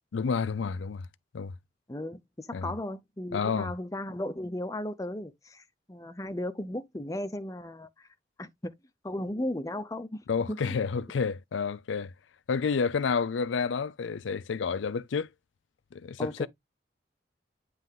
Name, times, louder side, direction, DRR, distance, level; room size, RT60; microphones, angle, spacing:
voice 1, 0.1-1.1 1.3-1.5 2.5-2.7 3.3-3.7 10.3-12.1 12.5-15.3 15.9-16.5, left 5 dB, 90° left, 0.5 m, -30 dB
voice 2, 1.9-8.1 8.4-8.7 9.0-10.2 10.5-10.6 16.2-16.5, left 1 dB, 20° left, 0.6 m, -35 dB
9.1 x 3.3 x 3.7 m
head